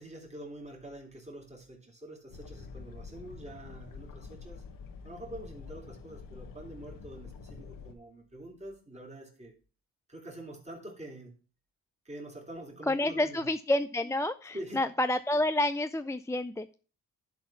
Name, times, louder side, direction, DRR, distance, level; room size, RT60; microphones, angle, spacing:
voice 1, 0.0-4.6 5.0-9.5 10.1-11.3 12.0-13.5 14.5-14.8, right 1 dB, 20° right, 0 dB, 3.2 m, -45 dB
sound 1, 2.3-7.9, left 5 dB, 75° left, 1.3 m, -47 dB
voice 2, 12.9-16.8, left 1 dB, 10° left, 10 dB, 0.4 m, -29 dB
10.5 x 4.1 x 5.7 m, 0.38 s
supercardioid pair, 60°, 34 cm